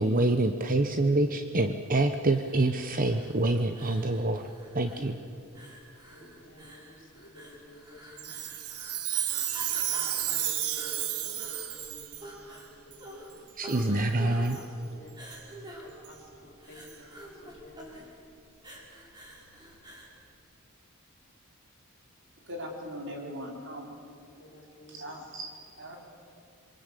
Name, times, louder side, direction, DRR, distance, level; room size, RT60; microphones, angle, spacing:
voice 1, 0.0-4.5 4.7-5.2 13.6-14.6, right 2 dB, 40° right, 7 dB, 0.9 m, -26 dB
sound 1, 2.3-20.2, right 1 dB, 20° right, 4.9 m, -47 dB
voice 2, 6.1-8.6 9.8-12.2 12.4-13.5 14.5-15.1 15.8-18.0 24.4-25.3, left 1 dB, 55° left, 2 dB, 3.9 m, -51 dB
Chime, 8.2-12.3 12.9-13.0 13.7-13.9 14.4-14.6 15.3-15.4 16.0-16.1 16.9-17.0, right 12 dB, 90° right, 1.5 m, -32 dB
voice 3, 22.4-24.0 24.9-26.0, equal, 55° right, 1 dB, 4.5 m, -40 dB
26.5 x 23.0 x 8.4 m, 2.6 s
head